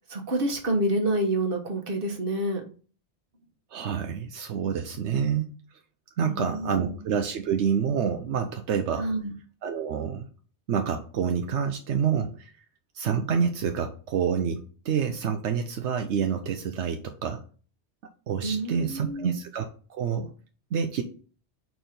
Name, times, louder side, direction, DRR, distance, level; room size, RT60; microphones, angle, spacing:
voice 1, 0.1-2.6 6.2-7.0 9.0-9.3 18.4-19.4, right 1 dB, 55° right, 3 dB, 1.4 m, -28 dB
voice 2, 3.7-5.5 6.2-9.1 9.6-10.3 10.7-12.5 12.9-17.4 18.3-20.3 20.7-21.0, right 7 dB, 80° right, 5 dB, 1.0 m, -28 dB
4.6 x 4.4 x 5.1 m, 0.39 s
omnidirectional pair, 1.2 m